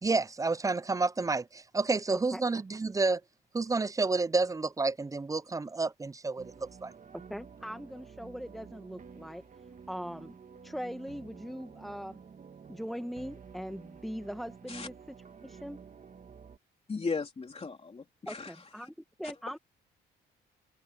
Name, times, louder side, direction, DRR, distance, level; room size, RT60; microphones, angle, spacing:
voice 1, 0.0-3.2 3.5-6.9, right 3 dB, 15° right, 0.5 m, -30 dB
sound 1, 6.4-16.6, right 6 dB, 40° right, 2.0 m, -51 dB
voice 2, 7.3-9.4 9.9-10.4 10.6-12.2 12.7-14.9 15.4-15.8 18.3-18.9 19.2-19.6, equal, ahead, 1.2 m, -40 dB
voice 3, 16.9-18.9 19.2-19.3, left 4 dB, 30° left, 3.5 m, -37 dB
cardioid pair, 90°, 20 cm